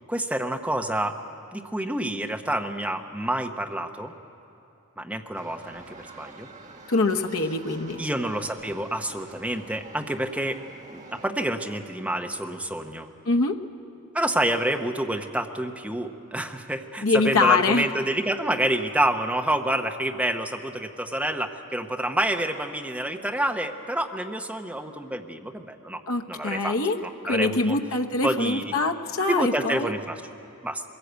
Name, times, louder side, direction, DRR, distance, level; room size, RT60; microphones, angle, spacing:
voice 1, 0.1-1.2 1.5-4.1 5.0-6.5 8.0-10.6 10.9-13.1 14.1-26.0 26.3-26.7 27.0-27.8 28.2-28.7 29.3-30.2 30.6-30.8, right 1 dB, 5° right, 4 dB, 0.9 m, -28 dB
sound 1, 5.3-11.3, right 3 dB, 35° right, 1.3 m, -47 dB
voice 2, 6.9-8.0 13.3-13.6 17.0-17.9 26.1-27.0 27.2-29.9, left 3 dB, 75° left, 3 dB, 1.0 m, -24 dB
22.0 x 16.5 x 8.1 m, 2.9 s
head